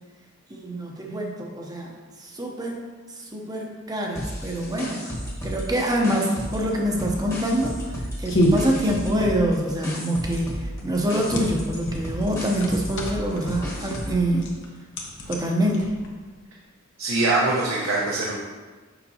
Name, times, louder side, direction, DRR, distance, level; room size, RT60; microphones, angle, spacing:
voice 1, 0.5-2.8 3.1-5.2 5.4-14.5 15.3-15.9, equal, 20° right, 0 dB, 0.8 m, -25 dB
sound 1, 4.1-6.7 7.0-14.2, equal, 15° left, 1.2 m, -33 dB
sound 2, 7.0-16.3, equal, 60° left, 1.0 m, -30 dB
voice 2, 17.0-18.3, right 2 dB, 70° right, -5 dB, 1.0 m, -23 dB
6.9 x 5.7 x 2.8 m, 1.4 s
head